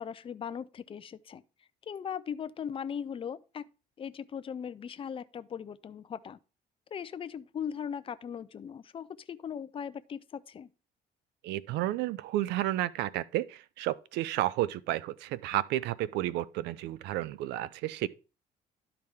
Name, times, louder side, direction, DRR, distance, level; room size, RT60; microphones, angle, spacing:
voice 1, 0.0-1.4 1.9-3.6 4.0-6.4 6.9-10.7, left 7 dB, 30° left, 0.5 m, -39 dB
voice 2, 11.4-18.1, right 15 dB, 85° right, 0.5 m, -32 dB
12.0 x 4.8 x 3.6 m
cardioid pair, 110°, 17 cm